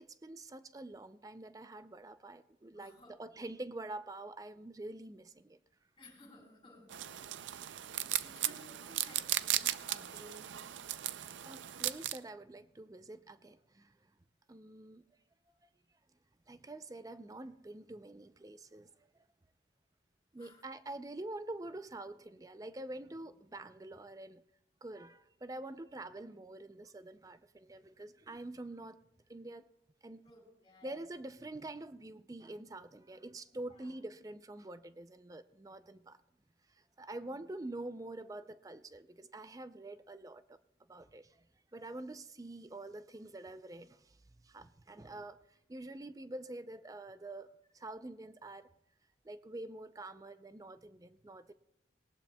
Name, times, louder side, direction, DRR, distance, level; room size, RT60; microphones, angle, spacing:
voice 1, 0.0-5.6 11.4-14.0 14.5-15.0 16.5-18.9 20.3-24.4 24.8-29.0 29.3-29.7 30.0-30.3 30.8-36.2 37.0-40.6 40.9-41.3 41.7-44.0 44.4-45.4 45.7-48.7 49.2-51.5, right 2 dB, 20° right, 12 dB, 0.4 m, -46 dB
voice 2, 2.7-3.5 6.0-10.6 20.4-20.6 25.7-25.8 30.2-31.0 33.7-33.9, left 1 dB, 30° left, 0 dB, 4.1 m, -58 dB
sound 1, 6.9-12.2, right 13 dB, 85° right, 0.5 m, -37 dB
19.0 x 18.5 x 2.3 m, 0.83 s
head